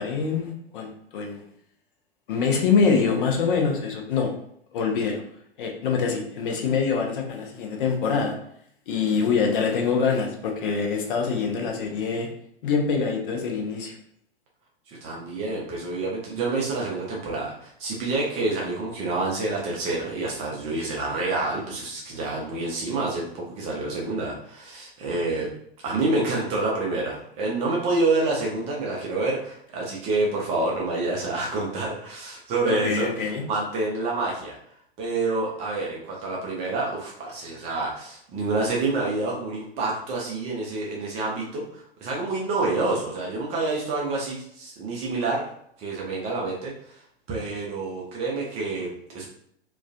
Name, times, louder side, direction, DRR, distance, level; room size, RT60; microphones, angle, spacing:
voice 1, 0.0-1.4 2.3-4.3 4.7-5.2 5.6-8.4 8.9-12.3 12.6-14.0 32.7-33.4, left 5 dB, 55° left, 1 dB, 0.6 m, -25 dB
voice 2, 14.9-25.5 25.8-34.6 35.0-45.5 45.8-47.0 47.3-49.3, right 3 dB, 20° right, -3 dB, 0.4 m, -28 dB
2.3 x 2.2 x 2.4 m, 0.68 s
figure-of-eight pair, 100°, 32 cm